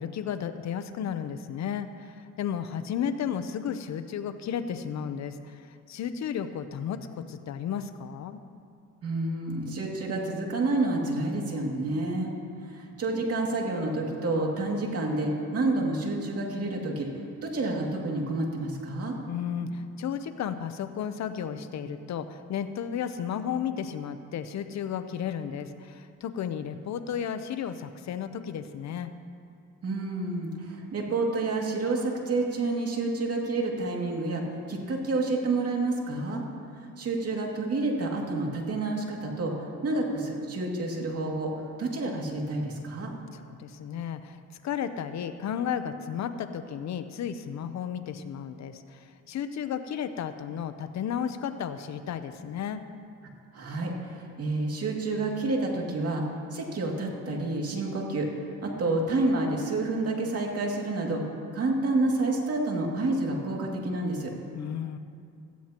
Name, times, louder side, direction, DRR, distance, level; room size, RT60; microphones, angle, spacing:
voice 1, 0.0-8.4 19.3-29.1 43.3-52.8 64.5-65.0, left 8 dB, 65° left, 11 dB, 0.7 m, -33 dB
voice 2, 9.0-12.3 12.7-17.1 17.4-19.2 29.8-34.4 34.7-36.4 37.0-39.5 39.8-41.5 41.8-43.1 53.5-56.3 56.5-58.3 58.6-61.2 61.5-64.3, right 2 dB, 50° right, 0 dB, 2.4 m, -29 dB
16.5 x 14.5 x 3.0 m, 2.4 s
cardioid pair, 90°, 30 cm